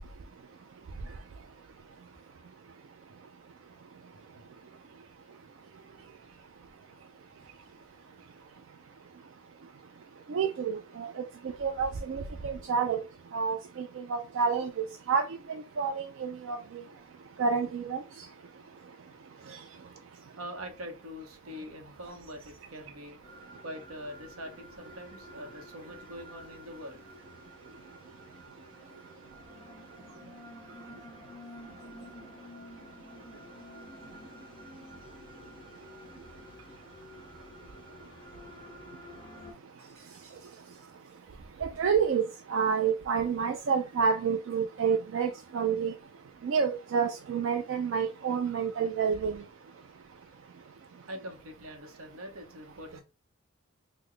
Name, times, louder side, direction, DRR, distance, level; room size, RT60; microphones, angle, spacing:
voice 1, 4.4-4.9 5.6-6.2 6.7-6.8 7.3-8.1 20.4-23.2 23.6-27.0 39.8-40.9 51.1-53.0, equal, 90° right, 5 dB, 0.8 m, -45 dB
voice 2, 10.3-11.2 11.6-13.0 13.3-16.6 17.4-18.0 41.6-46.0 46.4-49.4, right 6 dB, 65° right, 5 dB, 0.3 m, -29 dB
sound 1, 23.2-39.5, left 1 dB, 25° left, 0.6 m, -50 dB
3.7 x 2.1 x 3.1 m, 0.29 s
head